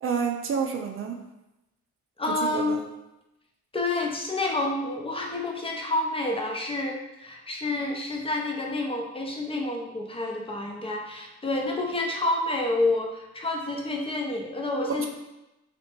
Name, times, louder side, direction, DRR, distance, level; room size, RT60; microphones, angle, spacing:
voice 1, 0.0-1.2 2.3-2.8 15.0-15.1, right 6 dB, 45° right, 3 dB, 0.4 m, -29 dB
voice 2, 2.2-2.8 3.7-15.1, left 2 dB, 20° left, 1 dB, 0.6 m, -29 dB
3.3 x 2.8 x 2.9 m, 0.94 s
cardioid pair, 90°, 30 cm